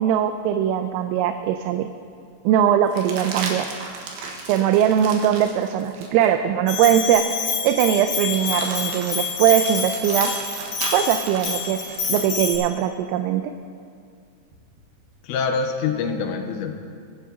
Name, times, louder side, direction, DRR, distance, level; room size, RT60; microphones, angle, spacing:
voice 1, 0.0-1.9 2.4-3.7 4.5-10.3 10.9-13.5, right 10 dB, 90° right, 7 dB, 2.9 m, -21 dB
sound 1, 1.3-1.4 2.9-6.3 6.9-7.0 8.2-12.3 14.5-15.4, right 4 dB, 65° right, 3.0 m, -35 dB
Bell, 6.7-12.6, left 5 dB, 55° left, 2.2 m, -27 dB
voice 2, 15.2-16.8, left 5 dB, 80° left, 4 dB, 3.0 m, -25 dB
21.5 x 11.0 x 2.7 m, 2.2 s
omnidirectional pair, 5.3 m